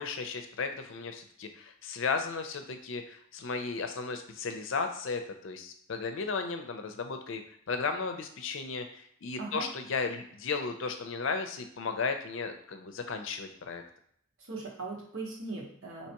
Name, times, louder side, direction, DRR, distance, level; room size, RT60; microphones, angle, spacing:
voice 1, 0.0-7.4 7.7-13.8, left 4 dB, 70° left, 7 dB, 0.5 m, -35 dB
voice 2, 9.4-9.7 14.4-16.1, right 3 dB, 75° right, -3 dB, 1.2 m, -39 dB
4.5 x 2.8 x 2.9 m, 0.67 s
head